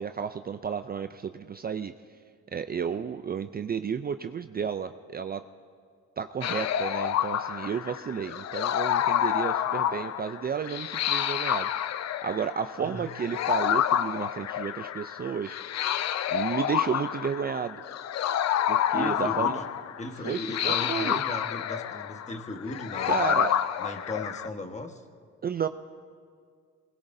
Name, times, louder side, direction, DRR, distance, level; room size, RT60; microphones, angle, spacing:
voice 1, 0.0-1.9 2.5-5.4 6.2-15.6 16.3-17.8 18.7-19.6 20.2-21.2 23.0-23.6 25.4-25.7, right 7 dB, 30° right, 9 dB, 0.4 m, -32 dB
sound 1, 6.4-24.5, left 10 dB, 60° left, 0.6 m, -29 dB
voice 2, 18.9-19.7 20.0-23.4 23.8-25.0, left 2 dB, 25° left, 4 dB, 1.4 m, -36 dB
26.0 x 20.5 x 2.7 m, 2.2 s
cardioid pair, 90°, 30 cm